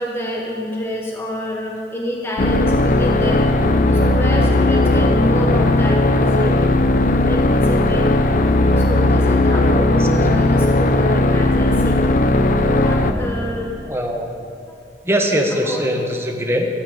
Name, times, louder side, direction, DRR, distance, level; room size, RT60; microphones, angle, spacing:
voice 1, 0.0-3.5 3.9-6.7 7.1-8.1 8.8-12.0 12.8-13.8 15.6-15.9, left 1 dB, 15° left, -2 dB, 1.2 m, -28 dB
sound 1, 2.4-13.1, left 2 dB, 45° left, 0.7 m, -16 dB
voice 2, 13.9-14.4 15.0-16.7, equal, 15° right, 2 dB, 1.3 m, -21 dB
15.5 x 7.2 x 7.8 m, 2.4 s
head